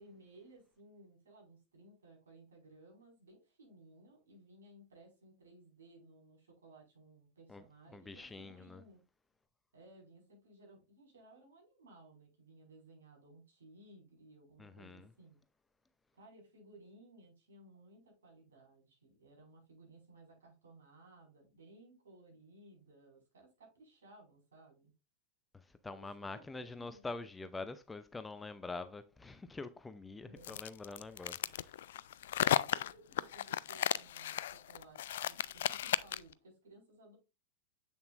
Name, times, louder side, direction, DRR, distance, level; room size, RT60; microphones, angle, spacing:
voice 1, 0.0-9.0 9.7-15.4 16.1-24.9 25.8-27.1 30.2-30.6 32.7-37.2, right 2 dB, 65° right, 5.0 m, -59 dB
voice 2, 7.9-8.8 14.6-15.1 25.8-31.7, left 3 dB, 10° left, 0.6 m, -45 dB
sound 1, 30.4-36.3, left 12 dB, 60° left, 0.3 m, -35 dB
7.9 x 6.9 x 2.5 m
figure-of-eight pair, 90°, 0 cm